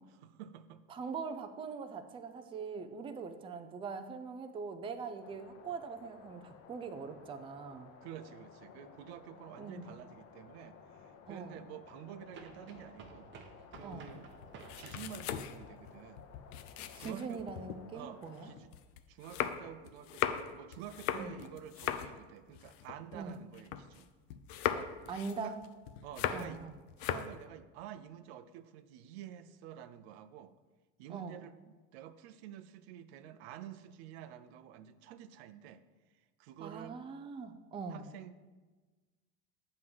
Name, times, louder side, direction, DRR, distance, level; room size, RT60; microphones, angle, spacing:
voice 1, 0.1-0.8 8.0-13.3 13.7-14.3 14.7-16.3 16.9-17.4 17.9-18.7 19.1-24.1 24.7-24.9 25.4-25.5 26.0-26.6 27.0-30.5 31.0-35.8 36.1-37.0 37.9-38.3, right 10 dB, 80° right, 12 dB, 0.6 m, -49 dB
voice 2, 0.9-7.9 9.6-10.0 11.3-11.6 13.8-14.1 16.9-18.5 21.1-21.3 23.1-23.4 25.1-25.6 26.3-26.7 31.1-31.4 36.6-38.1, right 5 dB, 15° right, 8 dB, 0.4 m, -42 dB
sound 1, 5.2-18.6, left 6 dB, 50° left, 0.9 m, -56 dB
sound 2, 9.9-10.0 12.3-15.2, right 5 dB, 35° right, 0.9 m, -53 dB
sound 3, 13.7-17.8 18.2-24.0 24.3-26.6 26.9-27.4, left 10 dB, 75° left, 0.6 m, -39 dB
7.5 x 3.8 x 6.0 m, 1.3 s
supercardioid pair, 125°, 32 cm